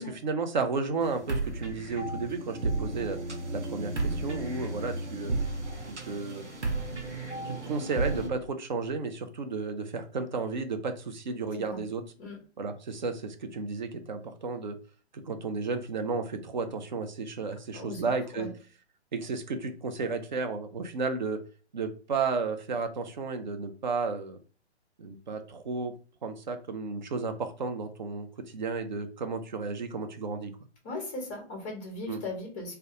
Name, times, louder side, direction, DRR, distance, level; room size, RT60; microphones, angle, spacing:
voice 1, 0.0-3.2 3.5-5.3 6.0-6.5 7.4-12.0 12.6-14.8 15.1-18.5 19.1-21.4 21.7-24.4 25.0-25.9 26.2-28.3 28.5-30.5 32.1-32.2, right 4 dB, 45° right, 7 dB, 0.4 m, -33 dB
sound 1, 1.0-8.3, right 2 dB, 85° right, 0.8 m, -33 dB
voice 2, 17.7-18.5 30.8-32.8, left 2 dB, 10° left, 0 dB, 0.6 m, -38 dB
2.2 x 2.2 x 2.8 m, 0.37 s
figure-of-eight pair, 130°, 34 cm